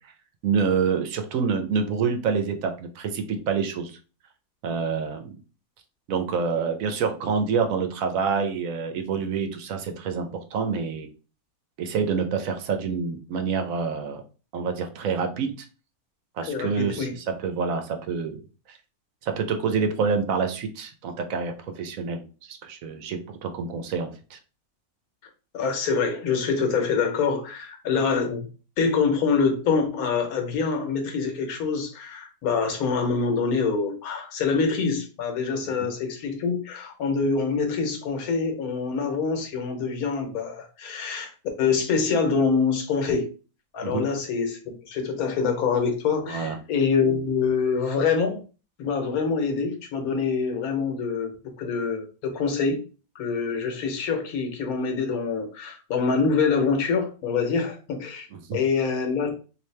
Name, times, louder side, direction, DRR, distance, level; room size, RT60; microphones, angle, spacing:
voice 1, 0.4-3.9 4.6-5.4 6.1-11.1 11.8-14.2 14.5-15.7 16.4-18.4 18.7-18.8 19.2-24.4 35.8-35.9 43.8-44.1 46.3-46.6 58.3-58.6, right 5 dB, 70° right, 1.0 m, -27 dB
voice 2, 16.5-17.1 25.5-28.5 28.8-41.3 41.6-43.3 43.7-48.4 48.8-52.8 53.1-58.3 58.5-59.3, left 5 dB, 80° left, 1.3 m, -25 dB
3.3 x 2.6 x 3.2 m
omnidirectional pair, 1.5 m